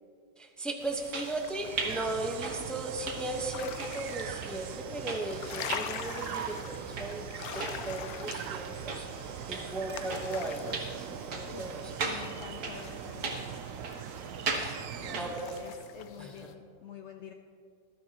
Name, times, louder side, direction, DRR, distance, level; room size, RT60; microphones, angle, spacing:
voice 1, 0.4-11.8 14.6-15.5 16.2-16.3, right 2 dB, ahead, 2 dB, 0.5 m, -37 dB
sound 1, 0.8-16.5, left 9 dB, 70° left, 0.9 m, -45 dB
sound 2, 0.8-15.8, right 3 dB, 65° right, 1.9 m, -40 dB
sound 3, 1.5-15.7, right 10 dB, 85° right, 0.7 m, -41 dB
voice 2, 11.5-13.5 15.0-17.3, left 7 dB, 85° left, 4 dB, 0.6 m, -47 dB
19.5 x 13.0 x 2.9 m, 2.4 s
omnidirectional pair, 1.9 m